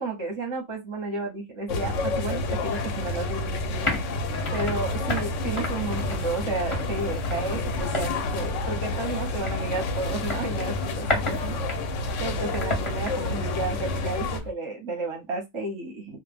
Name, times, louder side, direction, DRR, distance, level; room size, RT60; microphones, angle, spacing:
voice 1, 0.0-3.9 4.5-11.6 12.2-16.2, right 3 dB, 25° right, 0.7 m, -32 dB
sound 1, 1.7-14.4, left 2 dB, 70° left, 0.8 m, -29 dB
sound 2, 3.1-14.5, left 2 dB, 25° left, 0.8 m, -34 dB
2.3 x 2.0 x 3.4 m
omnidirectional pair, 1.5 m